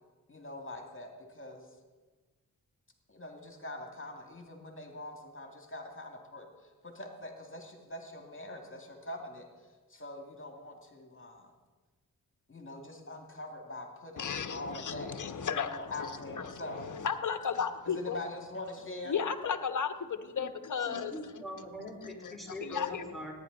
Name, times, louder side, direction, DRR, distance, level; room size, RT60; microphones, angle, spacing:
voice 1, 0.3-1.8 3.1-11.5 12.5-15.1 15.6-16.8 17.8-19.2, left 1 dB, 35° left, 2 dB, 2.3 m, -44 dB
voice 2, 14.2-18.2 19.1-21.2 22.2-23.1, left 6 dB, 50° left, 9 dB, 1.0 m, -35 dB
voice 3, 20.8-23.3, left 1 dB, ahead, -1 dB, 4.3 m, -42 dB
17.5 x 9.7 x 4.0 m, 1.3 s
cardioid pair, 50°, 38 cm